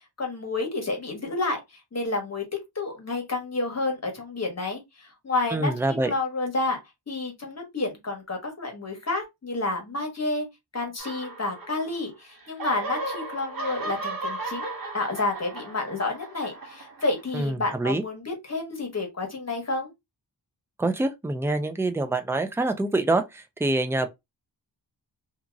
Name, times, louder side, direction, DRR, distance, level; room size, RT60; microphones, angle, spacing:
voice 1, 0.2-1.6 1.9-2.4 2.7-6.8 7.1-10.5 10.7-19.9, left 2 dB, 35° left, 1.2 m, -30 dB
voice 2, 5.5-6.1 17.3-18.0 20.8-24.1, right 2 dB, 5° right, 0.4 m, -25 dB
sound 1, 11.0-12.1 12.4-17.4, right 2 dB, 50° right, 0.9 m, -36 dB
2.8 x 2.6 x 2.4 m
wide cardioid pair, 85°, 44 cm